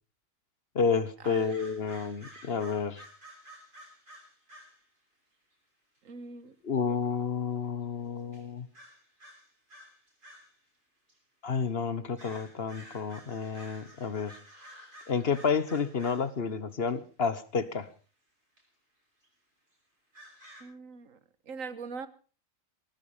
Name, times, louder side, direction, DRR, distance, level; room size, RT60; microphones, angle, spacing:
voice 1, 0.7-3.0 6.6-8.7 11.4-14.4 15.1-17.9, left 5 dB, 50° left, 1.3 m, -30 dB
sound 1, 1.2-4.8 5.9-6.0 7.6-7.7 8.3-8.4 8.7-10.6 11.1-11.2 12.1-16.3 16.9-17.0 17.7-17.8 18.6-18.7 19.2-19.3 20.1-20.6, equal, 40° right, 6.1 m, -52 dB
voice 2, 6.0-6.5 20.6-21.2 21.5-22.1, right 4 dB, 80° right, 1.6 m, -41 dB
18.5 x 14.5 x 5.0 m
omnidirectional pair, 1.4 m